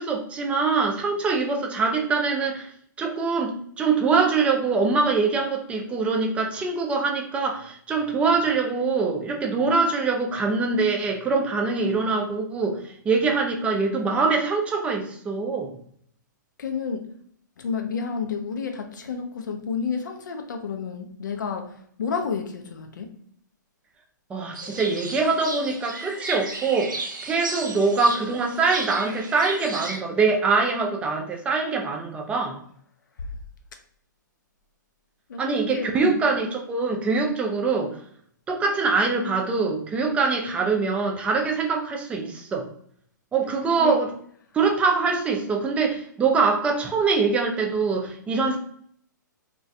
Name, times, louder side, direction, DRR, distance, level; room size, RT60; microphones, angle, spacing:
voice 1, 0.0-2.7 3.0-15.8 24.3-32.6 35.4-37.9 38.5-42.7 43.3-44.1 44.5-48.6, right 4 dB, 10° right, 0.4 m, -24 dB
voice 2, 16.6-17.1 17.6-23.2 33.2-33.3 35.3-36.2 43.8-44.0, left 5 dB, 70° left, 0.5 m, -31 dB
sound 1, 24.5-30.0, right 2 dB, 85° right, 0.6 m, -34 dB
2.2 x 2.1 x 2.6 m
hypercardioid pair, 125°, 10 cm